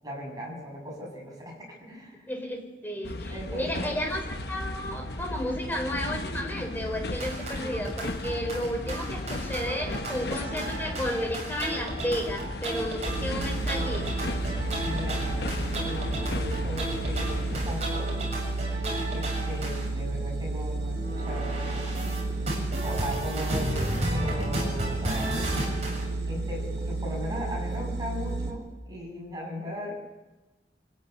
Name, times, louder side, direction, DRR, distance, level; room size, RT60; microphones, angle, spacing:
voice 1, 0.0-2.3 3.3-4.2 14.8-18.3 19.1-21.9 22.8-25.4 26.2-29.9, equal, 20° right, -1 dB, 7.2 m, -38 dB
voice 2, 2.3-14.1, equal, 10° left, 3 dB, 3.8 m, -33 dB
sound 1, 3.0-17.7, left 1 dB, 65° left, 1.1 m, -35 dB
sound 2, 7.2-19.9 20.9-26.0, right 1 dB, 35° right, 7.0 m, -34 dB
sound 3, 13.0-28.5, right 2 dB, 65° right, 4.0 m, -32 dB
24.0 x 15.0 x 9.5 m, 1.1 s
head